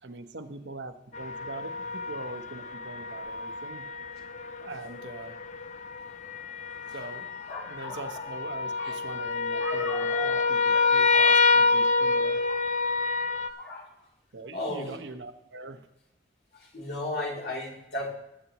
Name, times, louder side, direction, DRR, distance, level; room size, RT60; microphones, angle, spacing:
voice 1, 0.0-3.9 4.6-5.4 6.9-7.3 7.7-12.5 14.3-15.9, right 3 dB, 85° right, 7 dB, 1.0 m, -42 dB
sound 1, 1.1-13.5, left 4 dB, 40° left, 0.6 m, -27 dB
voice 2, 7.5-8.3 8.8-9.0 9.6-10.4 10.7-11.6 12.0-12.1 12.5-12.7 13.6-13.9 14.5-15.0 16.5-18.1, left 1 dB, 65° left, -2 dB, 3.0 m, -36 dB
19.5 x 8.1 x 3.0 m, 0.85 s
head